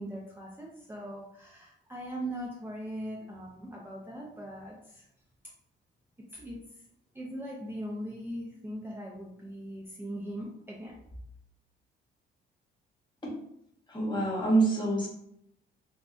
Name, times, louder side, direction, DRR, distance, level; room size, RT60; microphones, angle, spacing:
voice 1, 0.0-5.1 6.3-6.6 7.1-11.0, right 1 dB, 10° right, -4 dB, 0.4 m, -40 dB
voice 2, 13.9-15.1, right 2 dB, 20° left, -3 dB, 0.9 m, -26 dB
2.6 x 2.1 x 2.4 m, 0.75 s
cardioid pair, 90°, 20 cm